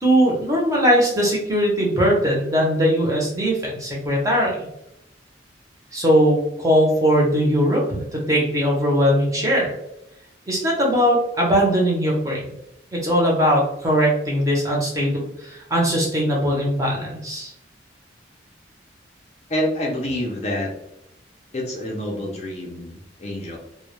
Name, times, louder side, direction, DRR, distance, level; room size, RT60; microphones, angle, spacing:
voice 1, 0.0-4.5 5.9-9.7 10.5-12.5 12.9-17.5, equal, 15° right, -3 dB, 0.6 m, -20 dB
voice 2, 19.5-20.7 21.5-23.6, left 1 dB, 35° left, -1 dB, 0.4 m, -27 dB
2.1 x 2.0 x 2.9 m, 0.81 s
head